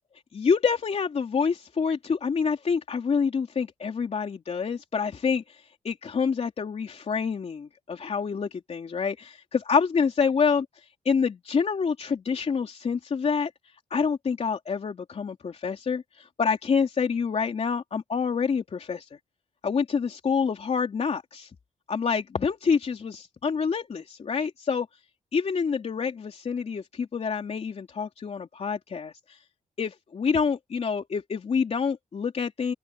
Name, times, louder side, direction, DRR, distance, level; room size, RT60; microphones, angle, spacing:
voice 1, 0.3-10.6 11.0-13.5 13.9-19.1 19.6-21.5 21.9-24.9 25.3-29.4 29.8-32.7, left 5 dB, 45° left, 3.1 m, -27 dB
open air
cardioid pair, 90°, 14 cm